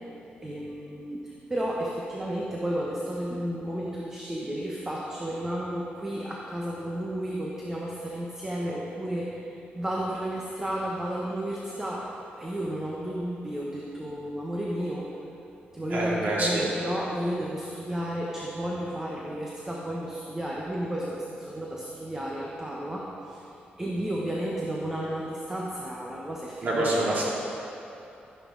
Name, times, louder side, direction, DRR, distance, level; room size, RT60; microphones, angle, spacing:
voice 1, 0.4-12.1 12.4-15.1 15.7-23.4 23.8-27.1, right 1 dB, 15° right, -4 dB, 1.2 m, -32 dB
voice 2, 15.9-16.6 26.6-27.3, right 1 dB, 50° right, -6 dB, 3.0 m, -26 dB
12.5 x 11.0 x 4.0 m, 2.7 s
wide cardioid pair, 135°, 4 cm